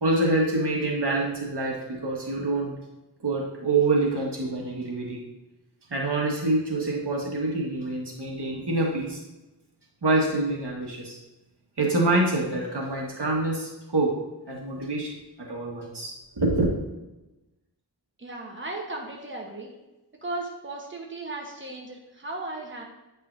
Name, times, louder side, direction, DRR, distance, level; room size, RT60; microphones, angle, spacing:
voice 1, 0.0-2.7 3.2-5.2 5.9-9.2 10.0-11.2 11.8-14.1 14.5-16.7, right 2 dB, 75° right, -2 dB, 1.6 m, -26 dB
voice 2, 18.2-19.7 20.2-22.8, right 2 dB, 30° right, 0 dB, 1.2 m, -36 dB
8.8 x 5.4 x 2.7 m, 1.0 s
wide cardioid pair, 60°, 40 cm